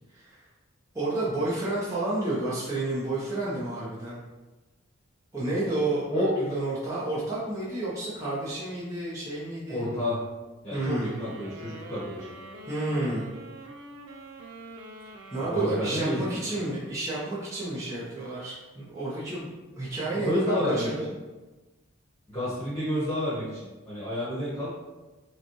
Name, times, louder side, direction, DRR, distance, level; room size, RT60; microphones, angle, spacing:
voice 1, 0.1-0.5 0.9-4.2 5.3-9.9 10.7-11.1 12.7-13.4 15.3-20.9, right 2 dB, 15° right, -9 dB, 0.7 m, -30 dB
voice 2, 9.7-10.3 10.6-12.3 15.4-16.2 20.1-21.1 22.3-24.7, left 1 dB, 10° left, -9 dB, 1.1 m, -30 dB
sound 1, 11.0-17.4, right 2 dB, 60° right, 0.4 m, -45 dB
5.3 x 2.2 x 3.0 m, 1.2 s
head